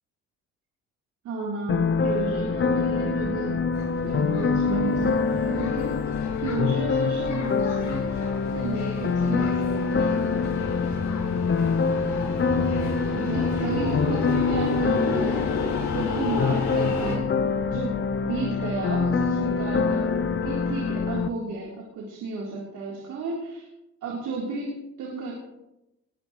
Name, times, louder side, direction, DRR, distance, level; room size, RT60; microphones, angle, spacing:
voice 1, 1.2-3.6 4.0-6.0 6.4-10.4 13.1-17.2 17.7-23.7 24.0-25.3, right 3 dB, 90° right, -4 dB, 4.0 m, -33 dB
sound 1, 1.7-21.3, left 5 dB, 40° left, 1.1 m, -25 dB
sound 2, 3.7-17.2, left 3 dB, 80° left, 6.7 m, -34 dB
21.0 x 16.0 x 3.3 m, 0.92 s
cardioid pair, 90°, 30 cm